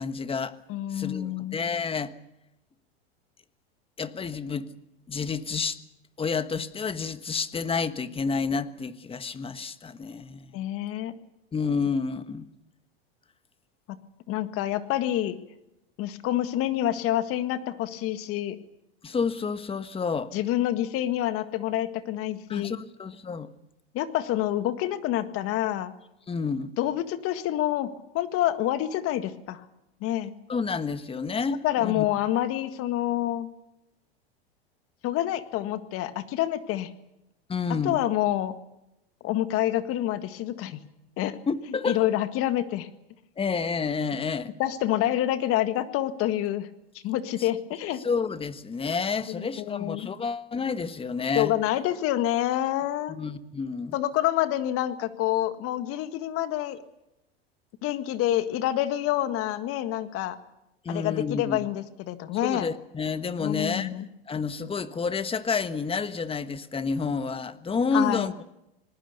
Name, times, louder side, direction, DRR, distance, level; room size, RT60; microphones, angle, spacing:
voice 1, 0.0-0.6 0.9-2.1 4.0-4.7 5.1-5.8 6.2-10.5 11.5-12.5 19.0-20.3 22.5-23.5 26.3-26.7 30.5-32.1 37.5-38.0 41.5-42.0 43.4-44.5 48.0-51.5 53.1-54.0 60.8-61.6 62.4-64.0 64.3-68.3, left 5 dB, 20° left, 1.4 m, -29 dB
voice 2, 0.7-1.6 10.5-11.1 13.9-14.0 14.3-15.4 16.0-18.6 20.3-22.8 23.9-25.9 26.8-29.6 30.0-30.4 31.6-33.5 35.0-36.9 37.8-38.5 39.2-40.8 41.2-41.4 41.9-42.9 44.6-46.7 47.0-48.0 49.3-50.1 51.4-53.2 53.9-56.8 57.8-60.4 60.9-62.7 63.4-64.1 67.9-68.3, left 13 dB, 45° left, 1.8 m, -27 dB
26.0 x 19.5 x 6.8 m
hypercardioid pair, 100°, 31 cm